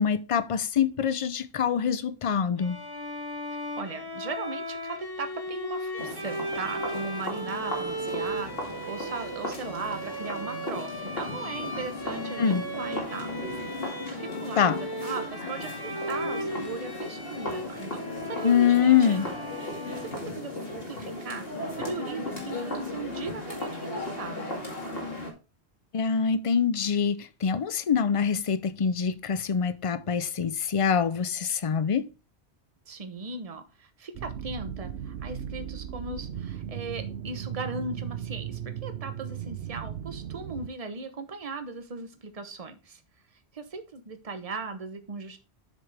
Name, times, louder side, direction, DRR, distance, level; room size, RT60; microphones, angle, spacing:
voice 1, 0.0-2.8 12.4-12.6 14.6-14.8 18.4-19.3 25.9-32.1, left 7 dB, 40° left, 0.5 m, -24 dB
Bowed string instrument, 2.6-20.4, right 1 dB, 20° left, 1.1 m, -37 dB
voice 2, 3.5-13.8 14.1-14.7 15.0-19.3 20.0-21.5 21.8-24.6 32.9-43.0 43.5-45.4, right 4 dB, 35° right, 1.0 m, -38 dB
sound 1, 6.0-25.3, left 2 dB, 60° left, 2.5 m, -36 dB
sound 2, 34.1-40.7, right 9 dB, 75° right, 1.0 m, -37 dB
7.6 x 6.7 x 3.4 m
omnidirectional pair, 1.1 m